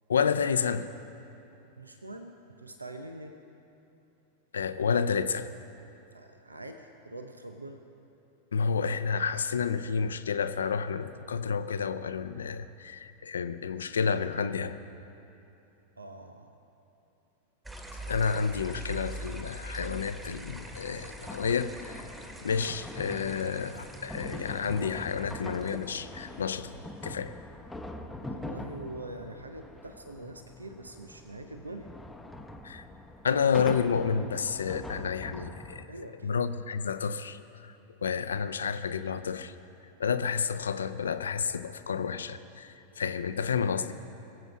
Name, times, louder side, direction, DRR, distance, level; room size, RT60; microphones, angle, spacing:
voice 1, 0.1-0.9 4.5-5.5 8.5-14.8 18.1-26.7 27.0-27.3 32.6-32.9 33.2-35.9 36.2-39.5 40.0-43.9, left 6 dB, 70° left, 12 dB, 0.6 m, -30 dB
voice 2, 1.8-3.4 6.1-7.8 16.0-16.6 28.2-31.9 35.9-36.4, right 2 dB, 80° right, 7 dB, 0.7 m, -44 dB
sound 1, 17.7-27.1, right 1 dB, 10° right, 1.6 m, -44 dB
sound 2, 20.6-35.8, left 1 dB, 5° left, 0.8 m, -43 dB
22.0 x 8.1 x 6.0 m, 3.0 s
figure-of-eight pair, 90°, 0 cm